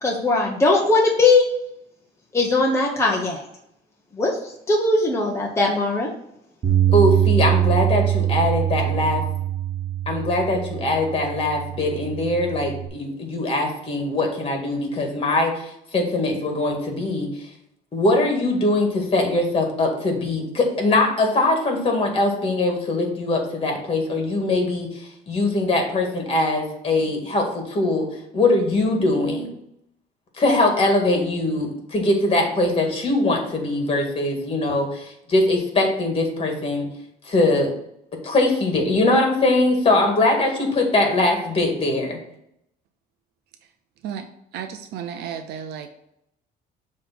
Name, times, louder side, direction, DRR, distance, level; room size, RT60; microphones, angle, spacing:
voice 1, 0.0-1.5 2.3-3.4 4.2-4.3 4.7-6.1, left 3 dB, 15° left, -2 dB, 1.0 m, -19 dB
Bass guitar, 6.6-12.9, right 12 dB, 45° right, 1.3 m, -23 dB
voice 2, 6.9-9.2 10.1-17.3 17.9-28.1 28.3-29.5 30.4-36.9 37.3-37.7 38.2-42.2, left 2 dB, 35° left, 2 dB, 1.9 m, -21 dB
voice 3, 44.5-45.9, right 8 dB, 75° right, 7 dB, 0.6 m, -33 dB
6.9 x 3.2 x 6.0 m, 0.77 s
cardioid pair, 110°, 17 cm